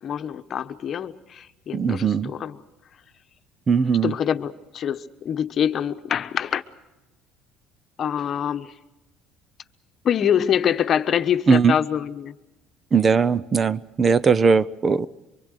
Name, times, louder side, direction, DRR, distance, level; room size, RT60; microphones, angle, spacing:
voice 1, 0.0-2.6 4.0-6.6 8.0-8.7 10.0-12.3, left 9 dB, 45° left, 9 dB, 1.1 m, -25 dB
voice 2, 1.7-2.3 3.7-4.1 11.5-11.7 12.9-15.1, right 5 dB, 30° right, 18 dB, 0.7 m, -19 dB
24.5 x 24.5 x 6.6 m, 1.0 s
cardioid pair, 110°, 0 cm